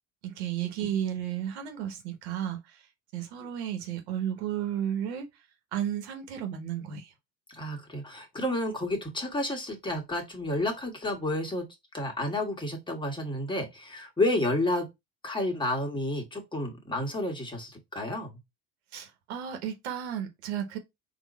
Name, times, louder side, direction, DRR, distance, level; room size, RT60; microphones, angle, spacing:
voice 1, 0.2-2.9 3.1-5.3 5.7-7.1 18.9-20.8, right 10 dB, 90° right, 1.3 m, -33 dB
voice 2, 7.5-11.7 11.9-14.9 15.2-18.4, left 1 dB, 15° left, 1.5 m, -30 dB
4.2 x 2.6 x 4.1 m
supercardioid pair, 100°, 32 cm